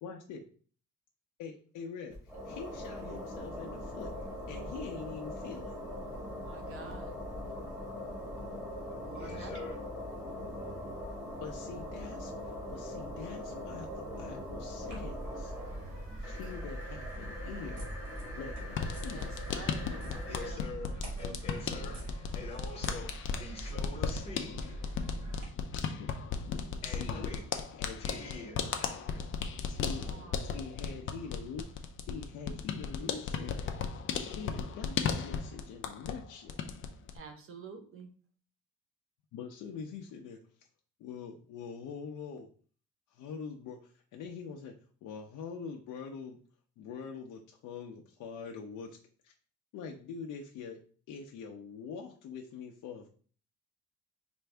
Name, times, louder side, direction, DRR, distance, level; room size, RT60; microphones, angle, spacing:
voice 1, 0.0-0.4 1.4-2.2 2.4-5.8 11.4-15.5 16.2-17.9 18.2-19.5 26.0-27.3 27.7-28.0 29.7-30.1 30.4-31.7 32.0-33.6 33.9-36.7 39.3-40.4 41.0-42.5 43.1-44.7 45.0-46.4 46.8-49.0 49.2-49.3 49.7-50.8 51.1-53.1, left 6 dB, 85° left, 1 dB, 0.6 m, -44 dB
sound 1, 2.1-20.5, left 1 dB, 10° right, 1.3 m, -41 dB
voice 2, 6.4-7.1 9.0-9.8 19.1-21.9 29.9-30.4 37.1-38.1, right 4 dB, 45° right, 5 dB, 0.8 m, -49 dB
voice 3, 9.1-9.8 20.3-24.8 26.8-27.6 28.0-29.3, left 3 dB, 20° left, -1 dB, 0.8 m, -45 dB
sound 2, 14.8-25.4, right 2 dB, 75° right, 2.0 m, -43 dB
sound 3, 18.7-36.2 36.5-37.2, left 6 dB, 40° left, 0.4 m, -36 dB
4.5 x 2.6 x 3.3 m, 0.43 s
cardioid pair, 175°, 30 cm